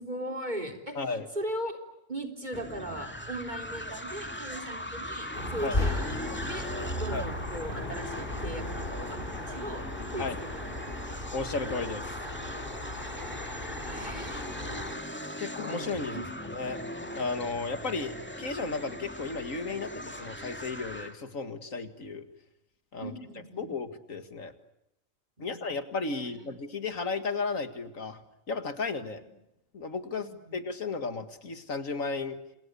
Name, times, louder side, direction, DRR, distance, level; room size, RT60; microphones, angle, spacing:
voice 1, 0.0-1.8 2.1-6.2 6.5-6.7 7.0-9.8 10.1-10.3 10.5-11.0 13.8-14.9 16.1-16.2 23.0-23.6 25.4-25.6 26.2-26.4 29.0-29.2 30.1-30.5, right 1 dB, 35° right, 4 dB, 4.0 m, -39 dB
voice 2, 1.0-1.3 5.6-5.8 7.1-7.2 10.2-10.4 11.3-12.1 14.6-14.8 15.4-16.2 16.5-16.8 17.1-22.3 22.9-23.1 23.6-24.5 25.4-28.2 28.5-29.2 29.7-32.4, left 4 dB, 75° left, 9 dB, 2.3 m, -34 dB
sound 1, 2.5-21.2, equal, 10° left, 2.3 m, -40 dB
sound 2, 5.3-14.9, left 1 dB, 40° left, 3.8 m, -36 dB
29.5 x 28.0 x 6.9 m, 0.87 s
omnidirectional pair, 1.4 m